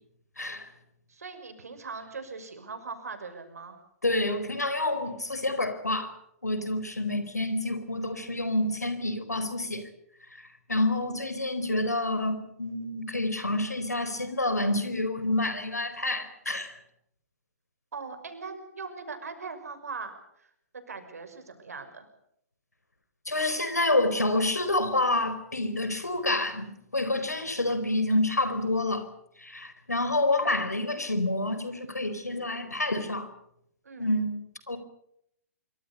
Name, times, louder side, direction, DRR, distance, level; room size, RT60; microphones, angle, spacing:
voice 1, 0.4-0.7 4.0-6.1 6.4-9.9 10.7-16.7 23.3-29.1 29.4-33.3 34.0-34.4 34.7-34.8, left 2 dB, 85° left, 11 dB, 4.4 m, -28 dB
voice 2, 1.1-3.7 17.9-22.1 33.8-34.1, right 4 dB, 70° right, 8 dB, 6.0 m, -40 dB
26.0 x 24.5 x 5.5 m, 0.73 s
figure-of-eight pair, 120°, 9 cm